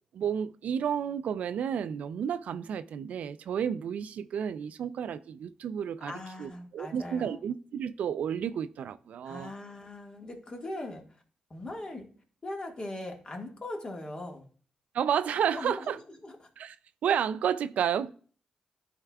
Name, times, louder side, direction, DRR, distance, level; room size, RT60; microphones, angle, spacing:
voice 1, 0.1-6.1 6.4-9.5 14.9-16.0 16.6-16.8 17.0-18.1, right 8 dB, 85° right, 0.3 m, -31 dB
voice 2, 6.1-7.4 9.2-11.0 11.5-12.0 12.4-14.4 15.5-15.9 16.2-16.4, left 1 dB, 40° left, 1.6 m, -40 dB
11.0 x 4.6 x 2.3 m
cardioid pair, 75°, 2 cm